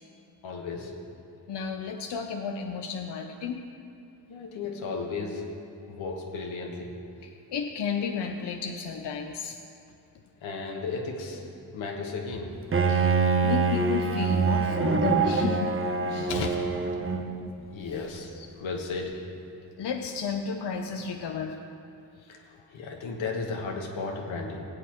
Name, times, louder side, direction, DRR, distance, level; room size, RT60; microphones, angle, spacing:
voice 1, 0.4-0.9 4.3-5.4 5.9-6.9 10.4-12.6 16.0-16.3 16.8-17.3 17.7-19.2 20.9-21.1 22.2-24.6, left 4 dB, 85° left, 0 dB, 1.5 m, -35 dB
voice 2, 1.5-3.6 7.5-9.6 12.9-13.1 13.4-15.7 16.0-16.6 17.9-18.1 18.4-18.5 19.8-21.6, left 6 dB, 60° left, 4 dB, 0.8 m, -32 dB
Bowed string instrument, 12.7-17.5, right 4 dB, 30° right, 0.8 m, -25 dB
18.5 x 8.2 x 3.1 m, 2.6 s
supercardioid pair, 50°, 46 cm